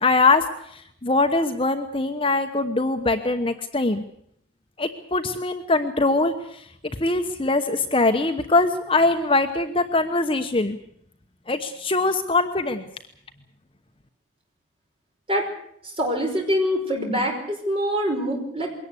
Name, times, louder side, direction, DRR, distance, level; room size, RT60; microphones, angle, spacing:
voice 1, 0.0-0.4 0.7-4.0 4.8-6.6 7.0-10.8 11.5-12.8, left 3 dB, 25° left, 7 dB, 1.0 m, -22 dB
voice 2, 15.8-18.7, equal, 25° right, 2 dB, 5.3 m, -24 dB
22.5 x 18.0 x 8.3 m, 0.71 s
head